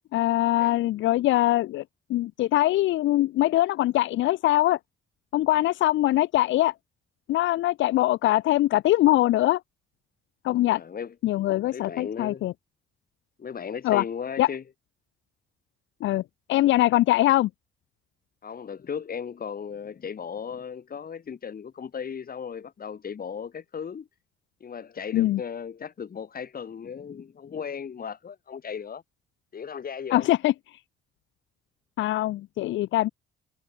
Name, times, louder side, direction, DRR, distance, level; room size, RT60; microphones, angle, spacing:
voice 1, 0.1-1.8 2.1-4.8 5.3-6.7 7.3-9.6 10.4-10.8 11.2-12.5 13.8-14.0 14.4-14.5 16.0-16.2 16.5-17.5 25.1-25.4 30.1-30.8 32.0-33.1, left 15 dB, 75° left, 0.5 m, -22 dB
voice 2, 10.7-11.1 11.7-12.5 13.4-14.6 18.4-24.1 24.6-29.0 29.5-30.3, left 7 dB, 45° left, 6.0 m, -36 dB
cardioid pair, 90°, 20 cm